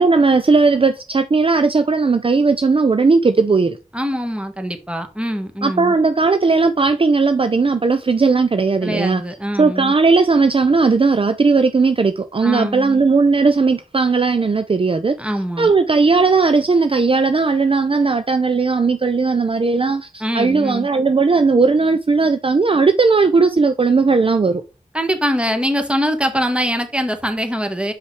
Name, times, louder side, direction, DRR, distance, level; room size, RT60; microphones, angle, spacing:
voice 1, 0.0-3.8 5.6-9.2 9.6-15.2 15.6-24.6, right 4 dB, 40° right, 0.5 m, -16 dB
voice 2, 3.9-5.9 8.8-9.9 12.4-13.0 15.2-15.7 20.2-20.9 24.9-27.9, equal, 10° right, 1.3 m, -23 dB
5.8 x 5.4 x 3.3 m
cardioid pair, 45°, 14 cm